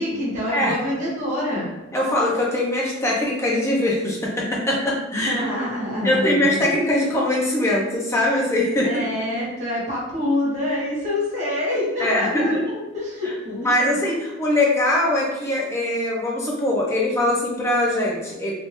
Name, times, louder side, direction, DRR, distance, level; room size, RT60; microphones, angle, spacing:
voice 1, 0.0-1.7 5.1-6.7 8.8-12.5 12.9-14.0, left 1 dB, 35° right, -7 dB, 1.3 m, -26 dB
voice 2, 1.9-5.4 6.0-9.1 12.0-12.6 13.6-18.5, left 1 dB, 15° left, -3 dB, 0.7 m, -22 dB
3.3 x 2.6 x 3.0 m, 1.1 s
head